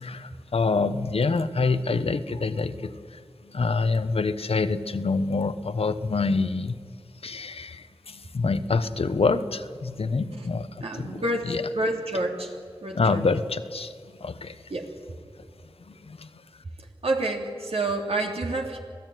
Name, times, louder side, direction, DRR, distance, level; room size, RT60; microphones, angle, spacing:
voice 1, 0.0-6.8 7.2-10.7 11.0-11.6 12.9-13.9 14.2-14.6 15.8-16.4, left 4 dB, 75° left, 11 dB, 1.0 m, -26 dB
voice 2, 10.8-12.5 12.8-13.2 14.7-14.9 17.0-18.8, right 2 dB, 80° right, 1 dB, 3.1 m, -28 dB
26.0 x 16.5 x 9.3 m, 2.1 s
cardioid pair, 45°, 10 cm